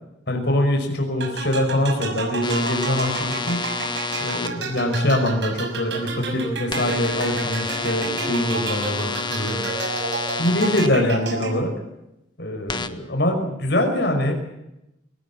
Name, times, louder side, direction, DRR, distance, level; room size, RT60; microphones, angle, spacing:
voice 1, 0.3-3.6 4.2-9.6 10.4-11.7 12.4-14.3, left 1 dB, 60° left, 3 dB, 5.8 m, -23 dB
sound 1, 1.2-11.9, right 3 dB, 70° right, 6.1 m, -31 dB
sound 2, 2.4-4.5 6.7-10.9 12.7-12.9, left 4 dB, 25° left, 1.4 m, -29 dB
23.5 x 19.0 x 8.7 m, 0.87 s
head